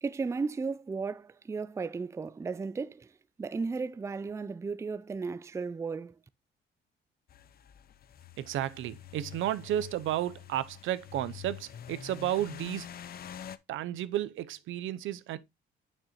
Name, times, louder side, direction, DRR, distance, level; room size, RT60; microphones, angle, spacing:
voice 1, 0.0-3.1 3.4-6.1, right 4 dB, 15° right, 0.4 m, -35 dB
sound 1, 7.3-13.6, left 10 dB, 50° left, 0.5 m, -46 dB
voice 2, 8.4-13.0 13.7-15.4, right 12 dB, 80° right, 0.6 m, -33 dB
6.5 x 6.3 x 3.0 m
cardioid pair, 90°, 20 cm